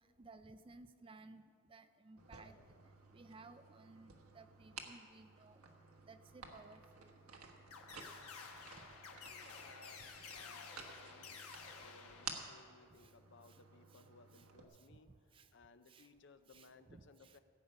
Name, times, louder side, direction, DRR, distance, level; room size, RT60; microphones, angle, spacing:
voice 1, 0.2-1.4 1.7-2.6 3.1-5.6 6.0-7.1 12.9-13.1 13.5-13.6 13.9-14.0 14.3-14.5 14.8-15.0 15.3-15.5 15.9-16.1 16.5-17.4, right 3 dB, 25° right, 10 dB, 0.4 m, -58 dB
sound 1, 2.2-14.6, right 5 dB, 85° right, 1.3 m, -54 dB
sound 2, 7.7-12.9, left 5 dB, 80° left, 1.3 m, -53 dB
voice 2, 9.2-11.5 11.7-17.4, left 4 dB, 55° left, 10 dB, 0.6 m, -62 dB
16.5 x 8.5 x 5.4 m, 2.1 s
head